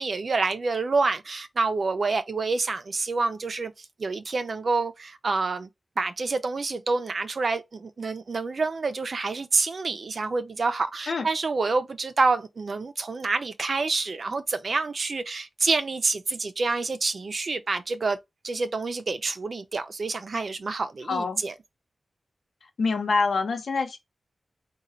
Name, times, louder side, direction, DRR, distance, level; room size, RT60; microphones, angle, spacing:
voice 1, 0.0-5.7 6.0-18.2 18.4-21.5, right 3 dB, 65° right, 0.6 m, -27 dB
voice 2, 21.1-21.4 22.8-24.0, left 4 dB, 85° left, 1.0 m, -25 dB
3.8 x 2.4 x 4.2 m
cardioid pair, 65°, 0 cm